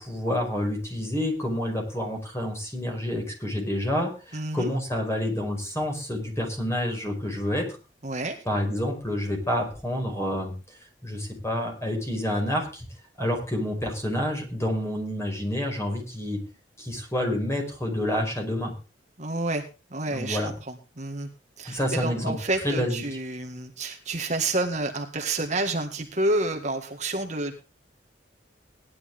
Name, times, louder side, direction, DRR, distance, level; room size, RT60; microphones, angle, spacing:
voice 1, 0.0-7.7 8.4-10.5 11.0-12.9 13.2-16.4 16.8-18.7 20.1-20.5 21.6-22.4 22.6-23.0, left 1 dB, 15° left, 2 dB, 5.2 m, -28 dB
voice 2, 4.3-4.8 8.0-8.4 19.2-19.6 19.9-21.3 21.6-27.5, right 2 dB, 40° right, 4 dB, 1.8 m, -29 dB
18.0 x 11.0 x 3.6 m, 0.32 s
head